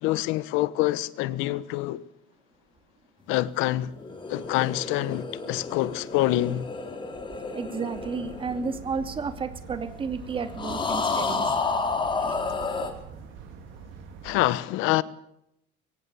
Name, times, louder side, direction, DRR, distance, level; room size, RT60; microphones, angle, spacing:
voice 1, 0.0-2.0 3.3-3.9 4.3-6.7 14.2-15.0, left 16 dB, 80° left, 1.2 m, -26 dB
sound 1, 3.9-9.5 10.6-12.9, left 4 dB, 25° left, 3.6 m, -31 dB
voice 2, 7.5-11.5 12.2-12.4, right 5 dB, 25° right, 2.8 m, -32 dB
sound 2, 7.9-14.5, right 7 dB, 75° right, 4.1 m, -44 dB
23.0 x 17.5 x 7.0 m
cardioid pair, 140°, 20 cm